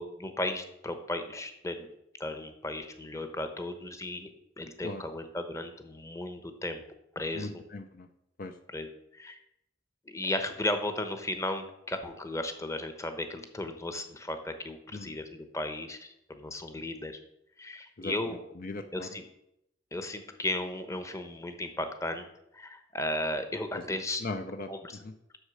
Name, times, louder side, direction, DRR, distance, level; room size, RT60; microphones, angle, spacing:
voice 1, 0.0-1.9 2.2-4.3 4.6-6.8 7.1-7.6 8.7-9.4 10.1-17.2 17.6-18.4 18.9-19.3 19.9-22.3 22.5-24.2 24.7-25.0, left 1 dB, 15° left, 8 dB, 0.9 m, -35 dB
voice 2, 7.3-8.1 8.4-8.5 14.9-15.1 18.0-18.1 18.6-19.1 24.2-24.7, left 3 dB, 50° left, 7 dB, 0.6 m, -37 dB
8.0 x 6.5 x 6.4 m, 0.81 s
head